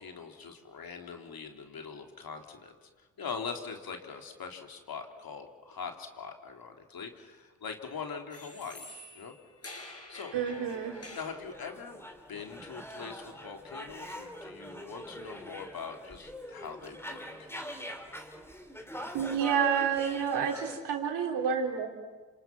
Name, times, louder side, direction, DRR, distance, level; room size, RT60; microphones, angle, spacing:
voice 1, 0.0-2.9 3.2-9.3 9.7-9.8 10.1-10.3 11.1-12.0 12.3-17.5, left 5 dB, 55° left, 3 dB, 3.5 m, -42 dB
sound 1, 8.3-11.4, left 2 dB, 35° left, 7.0 m, -48 dB
voice 2, 10.3-10.9 19.1-21.9, right 7 dB, 75° right, 3 dB, 3.6 m, -29 dB
sound 2, 10.5-20.7, equal, 5° left, 4.0 m, -44 dB
29.5 x 27.5 x 6.1 m, 1.4 s
hypercardioid pair, 50°, 42 cm